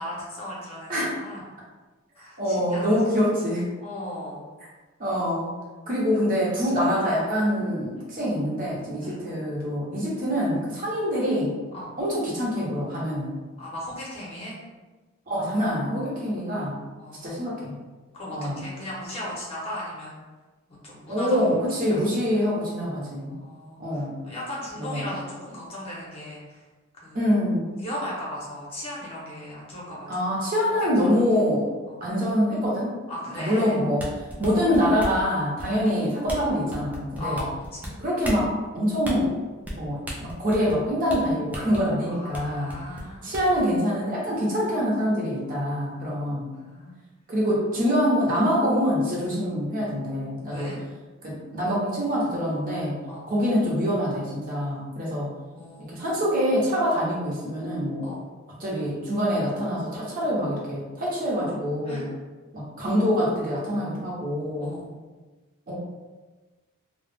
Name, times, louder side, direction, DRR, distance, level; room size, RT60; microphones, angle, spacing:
voice 1, 0.0-1.4 2.2-3.0 3.8-4.5 6.1-6.3 8.0-8.1 9.0-9.2 11.7-11.9 13.6-14.6 17.0-17.4 18.1-20.2 20.8-21.6 21.9-22.4 23.3-26.6 27.0-27.2 27.8-30.1 31.0-31.2 31.9-32.0 33.1-33.7 37.2-37.9 42.1-43.3 45.9-46.2 46.5-46.9 50.5-50.8 53.1-53.3 55.5-56.1 58.0-58.2 61.8-62.1 64.6-64.9, left 1 dB, 30° left, -6 dB, 0.7 m, -37 dB
voice 2, 2.4-3.7 5.0-5.5 5.9-11.6 12.0-13.4 15.3-16.8 17.2-17.8 18.3-18.6 21.1-23.3 23.8-24.2 24.8-25.1 27.1-27.8 30.1-31.7 32.0-32.9 33.4-37.4 38.0-39.4 39.7-42.7 43.2-46.5 47.3-50.7 51.2-52.9 53.3-55.3 55.9-58.1 58.6-62.1 62.5-64.7 65.7-65.8, equal, 40° right, -5 dB, 0.7 m, -25 dB
sound 1, 33.8-35.2 35.6-35.9 36.3-36.4 36.7-37.9 38.2-38.4 39.0-39.2 39.6-39.8 40.1-40.8 41.1-41.2 41.5-41.8 42.3-42.4 42.7-43.6, equal, 5° right, 0.4 m, -34 dB
2.3 x 2.0 x 3.2 m, 1.3 s
head